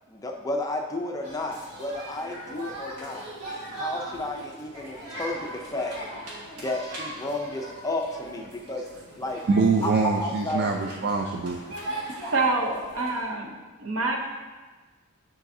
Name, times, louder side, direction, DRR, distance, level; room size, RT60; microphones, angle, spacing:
voice 1, 0.1-3.3 3.7-5.9 6.6-8.9 9.2-9.4 9.8-9.9 10.2-10.7, left 2 dB, 15° left, 2 dB, 0.4 m, -32 dB
sound 1, 1.2-13.2, right 1 dB, 85° right, 1.7 m, -39 dB
voice 2, 9.5-11.6, right 4 dB, 45° right, 2 dB, 0.4 m, -24 dB
voice 3, 12.3-13.5 13.8-14.3, right 3 dB, 65° right, 2 dB, 0.8 m, -26 dB
9.9 x 3.9 x 2.7 m, 1.3 s
head